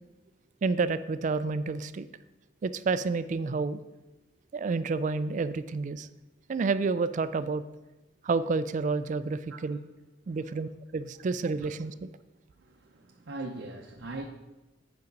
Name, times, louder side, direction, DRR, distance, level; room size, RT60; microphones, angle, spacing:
voice 1, 0.6-2.1 2.6-3.8 4.5-6.1 6.5-7.6 8.2-9.8 10.3-12.1, right 4 dB, 40° right, 14 dB, 0.3 m, -29 dB
voice 2, 13.0-14.2, right 2 dB, 80° right, 1 dB, 0.7 m, -39 dB
8.2 x 5.2 x 5.2 m, 1.1 s
head